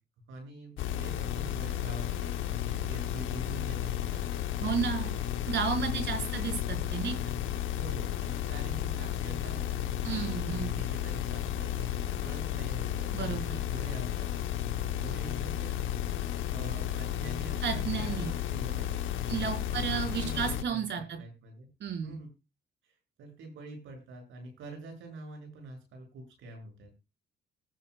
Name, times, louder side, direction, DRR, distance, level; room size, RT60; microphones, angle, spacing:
voice 1, 0.3-4.5 5.0-5.3 5.8-6.4 7.7-16.0 16.5-21.7 22.0-22.3 23.2-26.9, right 2 dB, 85° right, 3 dB, 7.0 m, -46 dB
sound 1, 0.8-20.6, left 11 dB, 80° left, 0.9 m, -33 dB
voice 2, 4.6-5.1 5.5-7.3 10.0-10.8 13.1-13.6 17.6-18.3 19.3-21.2 21.8-22.2, right 6 dB, 65° right, 4 dB, 4.7 m, -32 dB
21.0 x 7.8 x 2.3 m, 0.27 s
cardioid pair, 90°, 20 cm